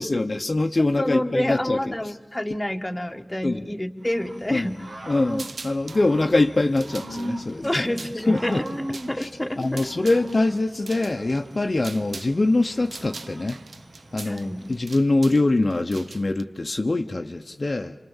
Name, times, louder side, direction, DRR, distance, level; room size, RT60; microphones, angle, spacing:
voice 1, 0.0-2.1 3.4-3.6 4.5-4.7 5.1-7.9 8.2-8.6 9.2-9.3 9.6-13.6 14.1-18.0, left 2 dB, 50° left, 0.9 m, -23 dB
voice 2, 1.0-4.8 7.6-9.9 14.3-14.7, left 1 dB, 15° left, 1.4 m, -28 dB
Growling / Cricket, 4.0-15.0, right 1 dB, 65° right, 2.0 m, -39 dB
sound 1, 5.3-6.1 6.6-12.4 12.6-16.4, right 3 dB, 90° right, 0.8 m, -42 dB
28.0 x 26.5 x 7.3 m
wide cardioid pair, 70°, 0 cm